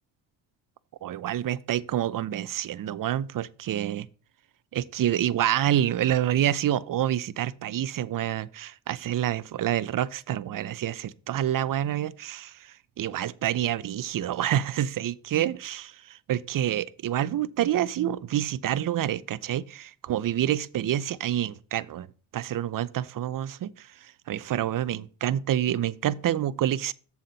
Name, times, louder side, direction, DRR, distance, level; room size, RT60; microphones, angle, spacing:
voice 1, 1.0-4.1 4.7-22.1 22.3-26.9, right 11 dB, 45° right, 0.6 m, -28 dB
7.4 x 7.2 x 4.0 m
supercardioid pair, 60°, 48 cm